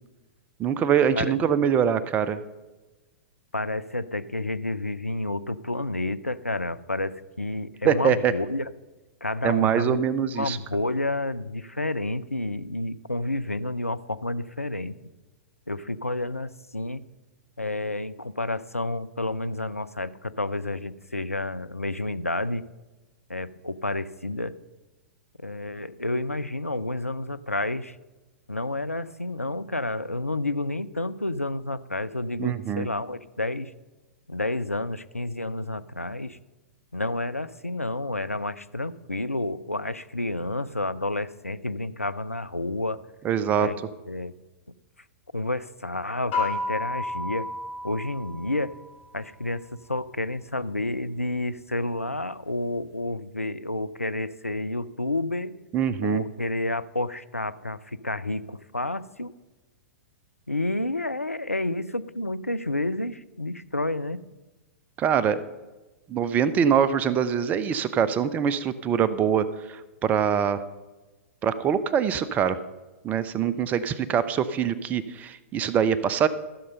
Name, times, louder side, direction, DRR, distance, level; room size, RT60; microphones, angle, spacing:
voice 1, 0.6-2.4 7.8-8.3 9.4-10.6 32.4-32.9 43.2-43.7 55.7-56.2 65.0-65.4 66.1-70.6 71.4-72.6 73.0-76.3, right 8 dB, 20° right, 15 dB, 0.5 m, -24 dB
voice 2, 3.5-8.7 9.2-10.0 10.4-15.0 15.7-17.0 17.6-22.6 23.3-24.5 25.4-28.0 28.5-33.7 34.3-36.4 36.9-43.0 43.6-43.8 44.1-44.3 45.3-47.5 47.8-48.7 49.1-55.5 56.0-59.3 60.5-64.2, left 2 dB, 90° left, 13 dB, 0.4 m, -30 dB
sound 1, 46.3-49.0, left 3 dB, 50° left, 3.4 m, -32 dB
14.0 x 6.6 x 5.3 m, 1.1 s
figure-of-eight pair, 105°, 7 cm